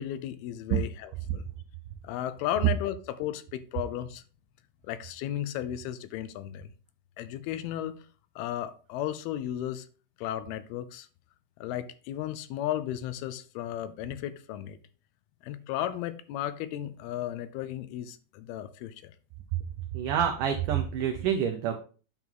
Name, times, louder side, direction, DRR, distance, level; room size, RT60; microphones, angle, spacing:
voice 1, 0.0-1.4 2.0-4.2 4.8-6.7 7.2-8.0 8.4-9.9 10.2-11.1 11.6-14.8 15.4-19.1, left 12 dB, 80° left, 2.4 m, -34 dB
voice 2, 19.9-21.7, right 8 dB, 85° right, 1.8 m, -27 dB
9.3 x 4.0 x 4.5 m
omnidirectional pair, 4.7 m